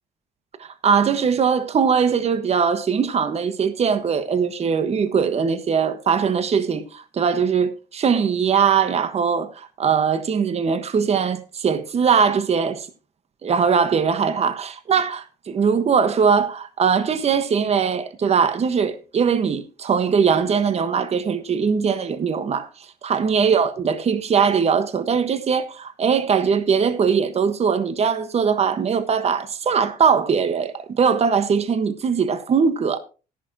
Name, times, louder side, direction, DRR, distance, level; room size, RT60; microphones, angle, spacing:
voice 1, 0.6-12.9 13.4-22.7 23.0-33.0, right 6 dB, 40° right, 1.4 m, -21 dB
13.0 x 11.5 x 3.0 m
cardioid pair, 110°, 17 cm